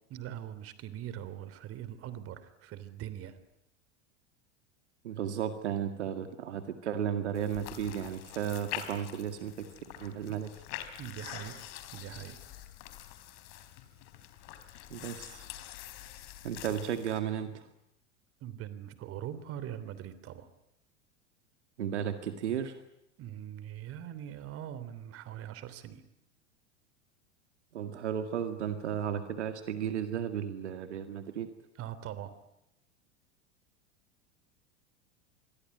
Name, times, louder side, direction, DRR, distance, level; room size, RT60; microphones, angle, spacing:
voice 1, 0.1-3.4 10.3-10.4 11.0-12.5 18.4-20.5 23.2-26.0 31.7-32.3, right 11 dB, 40° right, 14 dB, 3.2 m, -42 dB
voice 2, 5.0-10.5 14.9-15.5 16.4-17.7 21.8-22.7 27.7-31.5, right 9 dB, 75° right, 8 dB, 2.1 m, -34 dB
sound 1, 7.4-17.2, left 12 dB, 50° left, 3.8 m, -45 dB
26.5 x 22.5 x 9.6 m, 0.86 s
figure-of-eight pair, 85°, 35 cm